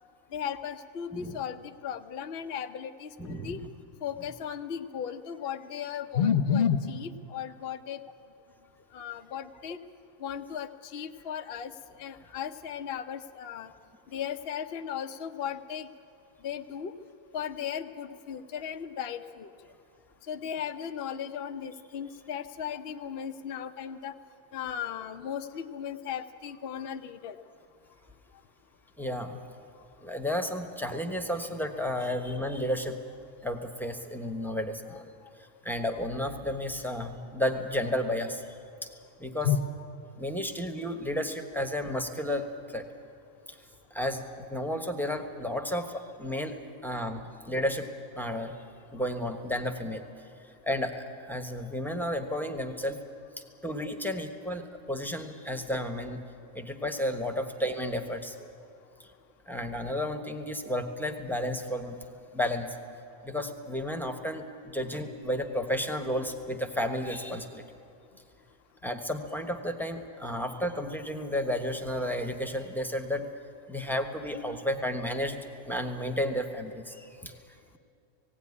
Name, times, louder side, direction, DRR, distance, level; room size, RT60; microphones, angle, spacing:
voice 1, 0.3-3.6 4.0-8.0 8.9-9.8 10.2-11.7 12.0-13.7 14.1-15.9 16.4-16.9 17.3-19.5 20.3-24.1 24.5-27.4 39.4-39.6, left 8 dB, 50° left, 7 dB, 0.8 m, -34 dB
voice 2, 3.2-3.7 29.0-29.4 30.0-33.0 33.4-35.1 35.4-38.5 38.8-38.9 39.2-39.5 40.2-42.9 43.5-43.6 43.9-47.9 48.1-48.6 48.9-50.0 50.4-53.0 53.4-56.2 56.5-58.5 59.0-59.1 59.5-62.0 62.3-62.8 63.2-67.6 68.8-73.3 73.7-75.4 75.6-77.4, left 1 dB, ahead, 5 dB, 1.0 m, -32 dB
17.5 x 17.0 x 9.7 m, 2.5 s
omnidirectional pair, 1.6 m